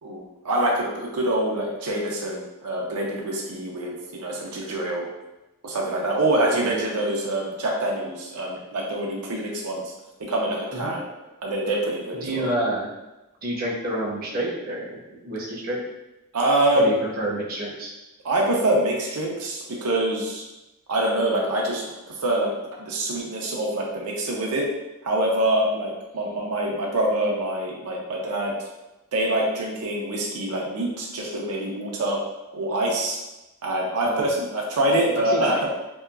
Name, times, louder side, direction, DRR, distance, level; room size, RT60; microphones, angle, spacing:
voice 1, 0.0-5.1 5.6-9.9 10.2-11.0 11.4-12.5 16.3-16.9 18.2-20.4 20.9-22.5 22.8-24.7 25.0-28.5 29.1-32.2 32.5-33.2 33.6-35.6, right 1 dB, 90° right, -2 dB, 0.5 m, -25 dB
voice 2, 6.5-6.9 10.7-10.9 12.2-12.9 13.4-15.8 16.8-17.9 34.0-34.3 35.2-35.7, right 1 dB, 40° right, -4 dB, 0.6 m, -29 dB
2.7 x 2.2 x 2.3 m, 1.0 s
head